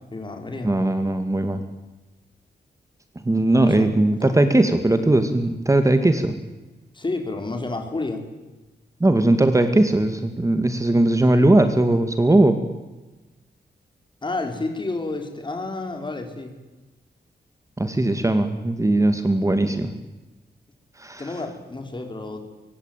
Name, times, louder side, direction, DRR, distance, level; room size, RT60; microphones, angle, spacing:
voice 1, 0.1-0.7 3.5-3.9 4.2-4.4 6.9-8.2 14.2-16.5 21.2-22.5, left 2 dB, 25° left, 4 dB, 4.9 m, -30 dB
voice 2, 0.6-1.6 3.2-6.3 9.0-12.6 17.8-19.9 21.0-21.3, right 1 dB, 15° right, 8 dB, 2.0 m, -19 dB
24.5 x 24.5 x 9.1 m, 1.1 s
wide cardioid pair, 115°, 18 cm